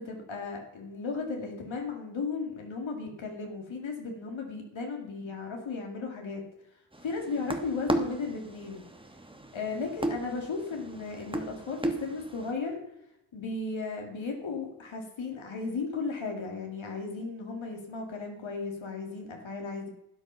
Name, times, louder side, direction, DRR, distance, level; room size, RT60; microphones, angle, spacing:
voice 1, 0.0-6.4 6.7-8.9 9.5-12.8 13.3-19.9, left 4 dB, 70° left, 2 dB, 2.3 m, -35 dB
sound 1, 6.9-12.5, right 1 dB, 10° right, 1.1 m, -35 dB
12.0 x 8.6 x 5.6 m, 0.83 s
wide cardioid pair, 120°, 48 cm